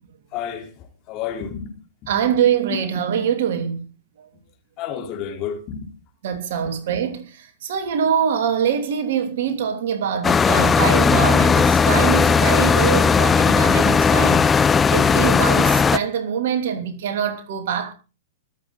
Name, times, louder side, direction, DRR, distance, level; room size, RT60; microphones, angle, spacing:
voice 1, 0.3-0.7 1.1-1.8 2.0-2.1 4.8-5.8, left 8 dB, 35° left, 3.9 m, -30 dB
voice 2, 2.1-3.9 4.2-4.3 6.2-14.5 14.9-17.9, right 8 dB, 60° right, 2.8 m, -24 dB
sound 1, 10.2-16.0, left 5 dB, 15° left, 0.7 m, -16 dB
24.5 x 8.3 x 4.0 m
figure-of-eight pair, 105°, 0 cm